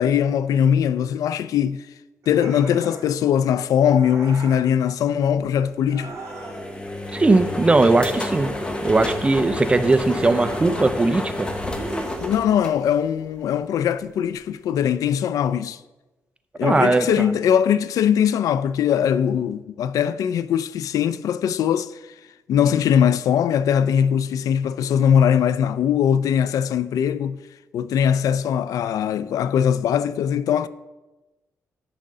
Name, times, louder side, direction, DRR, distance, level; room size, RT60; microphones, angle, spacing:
voice 1, 0.0-1.9 2.3-6.2 12.2-15.8 16.6-22.0 22.5-27.4 27.7-30.7, left 8 dB, 85° left, 0.3 m, -21 dB
sound 1, 2.2-3.2 3.9-4.7 5.8-6.8 8.1-9.2 10.0-11.0 11.7-12.7, right 3 dB, 60° right, 1.8 m, -38 dB
sound 2, 6.1-13.4, left 2 dB, 15° left, 0.9 m, -30 dB
voice 2, 7.1-8.5 8.8-11.5 16.6-17.3, right 3 dB, 20° right, 0.5 m, -19 dB
11.0 x 3.8 x 6.6 m
wide cardioid pair, 140°, 6 cm